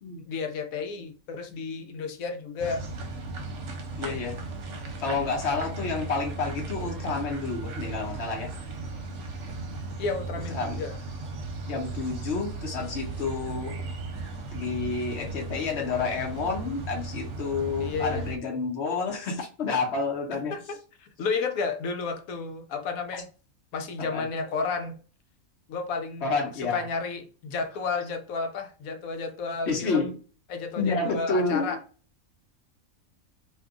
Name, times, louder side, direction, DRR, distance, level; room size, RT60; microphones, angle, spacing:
voice 1, 0.3-2.9 10.0-11.0 17.8-18.2 20.5-23.3 23.7-25.0 25.7-30.1 30.5-31.8, left 4 dB, 80° left, 1.0 m, -32 dB
sound 1, 2.6-18.4, right 3 dB, 65° right, 1.0 m, -36 dB
voice 2, 4.0-4.4 5.0-8.5 10.5-10.8 11.7-13.8 14.5-20.5 24.0-24.3 26.2-26.9 29.7-30.2 30.8-31.8, left 4 dB, 55° left, 1.0 m, -29 dB
2.7 x 2.3 x 3.6 m
omnidirectional pair, 1.5 m